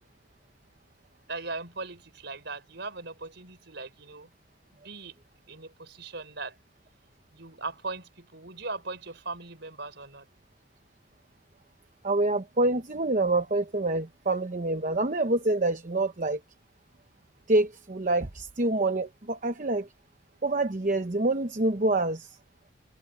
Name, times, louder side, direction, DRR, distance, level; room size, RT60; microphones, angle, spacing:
voice 1, 1.3-4.3 4.8-5.2 5.5-6.6 7.3-10.3, right 3 dB, 55° right, 5.6 m, -39 dB
voice 2, 12.0-16.4 17.5-19.9 20.4-22.4, right 2 dB, 40° right, 0.9 m, -26 dB
head